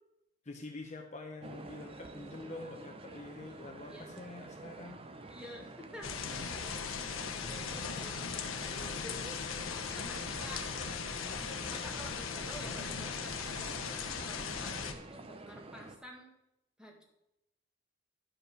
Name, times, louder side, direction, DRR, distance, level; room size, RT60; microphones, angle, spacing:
voice 1, 0.4-5.0 6.3-6.5, left 2 dB, 35° left, 3 dB, 0.8 m, -46 dB
sound 1, 1.4-16.0, right 2 dB, 25° right, 0.6 m, -49 dB
voice 2, 5.3-9.2 9.9-10.7 11.7-16.3 16.8-17.0, equal, 5° right, 0 dB, 1.6 m, -50 dB
sound 2, 6.0-14.9, left 6 dB, 75° left, 1.0 m, -38 dB
11.5 x 5.4 x 6.3 m, 0.86 s
head